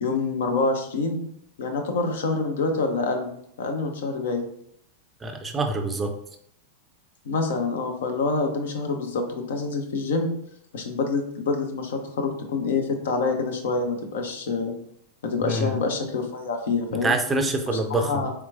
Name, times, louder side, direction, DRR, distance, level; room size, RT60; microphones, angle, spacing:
voice 1, 0.0-1.3 1.6-3.3 3.6-4.5 7.2-10.3 10.7-14.7 15.2-17.2 17.7-18.3, left 3 dB, 60° left, 4 dB, 0.6 m, -26 dB
voice 2, 5.2-6.1 15.4-15.7 17.0-18.2, right 2 dB, 15° right, 5 dB, 0.5 m, -25 dB
4.5 x 3.4 x 2.4 m, 0.70 s
figure-of-eight pair, 90°, 0 cm